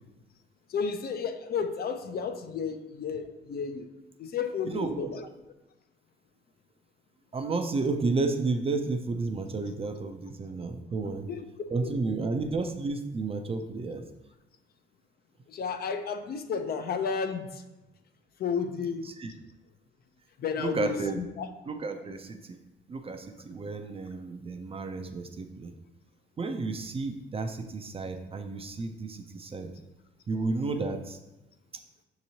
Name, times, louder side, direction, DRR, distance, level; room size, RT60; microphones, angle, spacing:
voice 1, 0.7-3.9 4.2-5.2 11.0-11.4 11.8-12.0 15.5-17.6 18.4-19.1 20.4-21.5, left 6 dB, 50° left, 7 dB, 0.4 m, -32 dB
voice 2, 4.7-5.1 7.3-11.3 11.7-14.0 19.0-19.4 20.6-21.2 21.7-22.6 22.9-25.7 26.4-29.7 30.3-31.2, right 3 dB, 30° right, 6 dB, 0.4 m, -32 dB
6.1 x 2.9 x 2.7 m, 0.99 s
cardioid pair, 90°, 20 cm